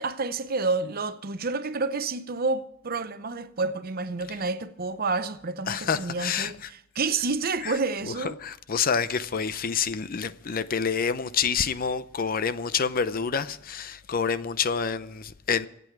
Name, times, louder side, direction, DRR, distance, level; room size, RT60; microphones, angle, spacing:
voice 1, 0.0-8.3, right 3 dB, 50° right, 0.8 m, -29 dB
voice 2, 5.7-6.7 7.6-7.8 8.2-15.7, left 6 dB, 45° left, 0.6 m, -28 dB
25.5 x 8.5 x 4.7 m
head